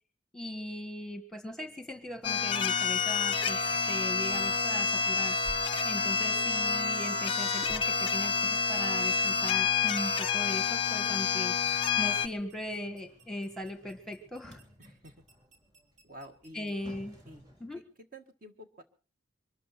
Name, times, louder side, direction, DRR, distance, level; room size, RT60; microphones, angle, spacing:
voice 1, 0.3-3.6 3.9-5.4 5.8-11.5 12.0-14.6 16.5-17.2 17.6-17.8, left 1 dB, ahead, 7 dB, 1.7 m, -39 dB
sound 1, 1.5-17.9, left 1 dB, 20° right, 3.4 m, -59 dB
sound 2, 2.2-12.3, left 6 dB, 25° left, 0.7 m, -28 dB
sound 3, 10.3-17.6, equal, 65° right, 3.0 m, -55 dB
voice 2, 14.8-15.1 16.0-16.8 17.2-17.4 17.7-17.8 18.1-18.8, equal, 45° right, 6 dB, 1.6 m, -50 dB
24.0 x 13.0 x 4.3 m, 0.37 s
head